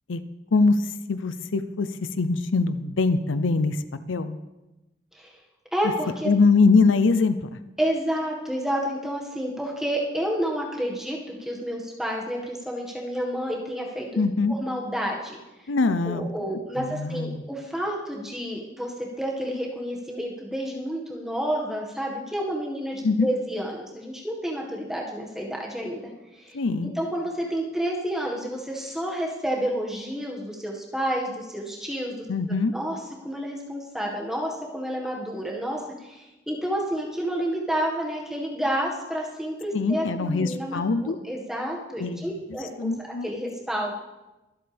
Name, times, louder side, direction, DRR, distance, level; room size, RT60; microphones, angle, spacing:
voice 1, 0.5-1.9 2.2-3.8 4.1-4.4 6.3-7.5 14.2-14.5 15.7-16.3 16.8-17.4 23.0-23.3 26.5-26.9 32.3-32.7 39.7-41.2 42.0-42.3 42.8-43.3, left 3 dB, 90° left, 11 dB, 0.6 m, -22 dB
voice 2, 5.7-6.3 7.8-14.2 14.5-15.7 16.0-26.6 27.0-42.9 43.2-43.9, equal, ahead, -2 dB, 1.7 m, -30 dB
23.5 x 7.9 x 3.5 m, 1.0 s
head